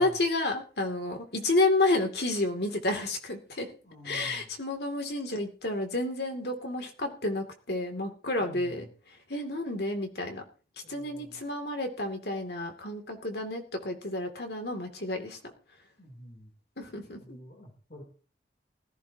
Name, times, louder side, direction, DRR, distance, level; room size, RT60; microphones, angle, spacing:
voice 1, 0.0-3.7 4.0-8.9 9.3-10.4 10.9-15.4 16.8-17.4, left 2 dB, 65° left, 4 dB, 2.6 m, -30 dB
voice 2, 3.8-4.5 8.4-8.9 10.8-11.4 16.0-16.5 17.2-18.0, equal, 45° left, 1 dB, 3.2 m, -48 dB
19.5 x 14.5 x 2.9 m, 0.36 s
head